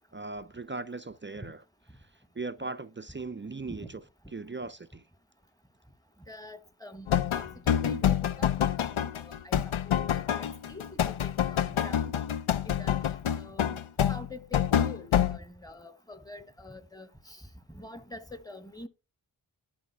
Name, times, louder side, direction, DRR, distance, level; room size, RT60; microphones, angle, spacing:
voice 1, 0.1-1.6 2.4-4.0 4.3-5.0, right 3 dB, 25° right, 0.4 m, -38 dB
voice 2, 6.3-8.8 9.2-10.1 10.4-12.1 12.6-13.0 13.3-13.8 14.1-17.4 17.7-18.9, left 1 dB, 5° left, 1.1 m, -45 dB
sound 1, 7.1-15.4, left 9 dB, 75° left, 0.6 m, -27 dB
10.5 x 4.9 x 4.4 m
wide cardioid pair, 45°, 50 cm